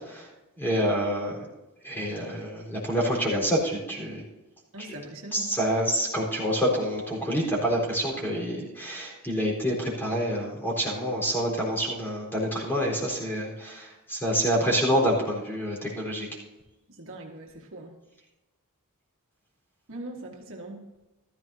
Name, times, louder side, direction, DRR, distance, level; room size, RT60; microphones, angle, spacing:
voice 1, 0.6-1.5 1.8-4.2 5.3-16.3, equal, 10° left, -3 dB, 4.1 m, -27 dB
voice 2, 4.7-5.6 16.9-18.0 19.9-20.8, right 1 dB, 60° right, 1 dB, 1.6 m, -41 dB
15.5 x 13.5 x 2.8 m, 1.1 s
head